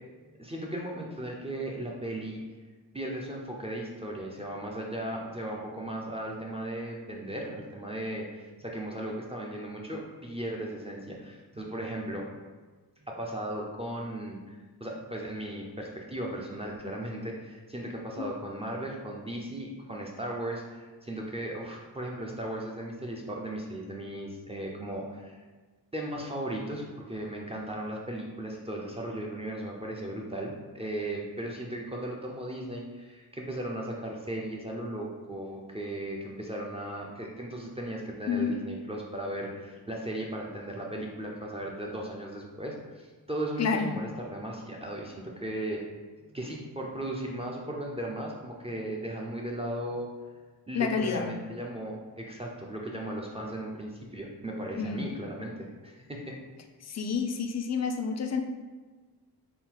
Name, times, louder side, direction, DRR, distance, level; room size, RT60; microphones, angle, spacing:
voice 1, 0.4-2.4 2.9-12.3 13.1-25.4 25.9-45.8 46.3-50.1 50.7-56.4, right 1 dB, 15° right, -1 dB, 0.5 m, -36 dB
voice 2, 43.6-43.9 50.7-51.3 54.7-55.1 56.8-58.4, left 5 dB, 45° left, 5 dB, 0.4 m, -29 dB
3.7 x 2.4 x 4.3 m, 1.3 s
wide cardioid pair, 130°, 39 cm